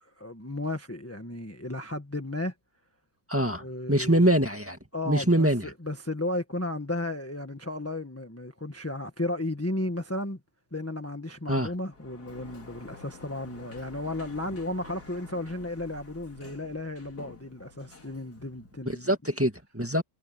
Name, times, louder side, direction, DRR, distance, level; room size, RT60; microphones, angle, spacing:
voice 1, 0.0-2.5 3.5-4.3 4.9-10.4 10.7-19.2, left 1 dB, 10° left, 1.5 m, -34 dB
voice 2, 3.3-3.6 3.9-4.8 5.1-5.6 11.5-11.7 19.0-20.0, right 1 dB, 10° right, 1.9 m, -24 dB
Sliding door, 11.9-19.0, left 3 dB, 80° left, 3.4 m, -49 dB
omnidirectional pair, 1.6 m